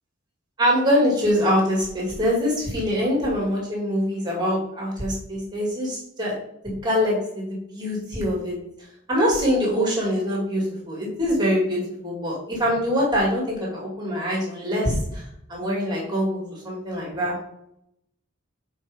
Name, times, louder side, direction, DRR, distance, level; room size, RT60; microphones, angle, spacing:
voice 1, 0.6-6.4 6.6-8.5 9.1-15.2 15.5-17.4, equal, 20° right, -3 dB, 2.4 m, -24 dB
9.5 x 4.6 x 3.6 m, 0.77 s
head